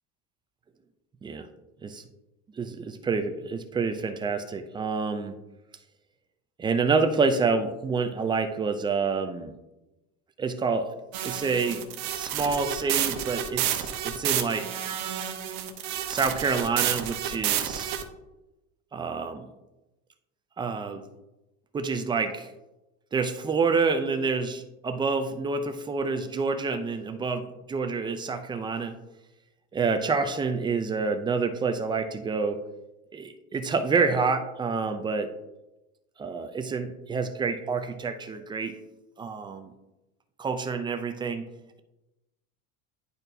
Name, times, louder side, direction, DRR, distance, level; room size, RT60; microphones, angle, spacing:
voice 1, 2.6-5.4 6.6-9.5 10.4-10.9 11.2-11.8 12.2-14.7 16.1-18.0 18.9-19.5 20.6-21.0 21.7-22.5 23.1-29.0 29.7-32.6 33.1-35.3 36.2-38.8 39.2-39.7 40.4-41.5, right 4 dB, 15° right, 7 dB, 0.3 m, -28 dB
sound 1, 11.1-18.0, right 10 dB, 75° right, 0.9 m, -30 dB
10.5 x 4.3 x 2.6 m, 0.99 s
cardioid pair, 145°, 35 cm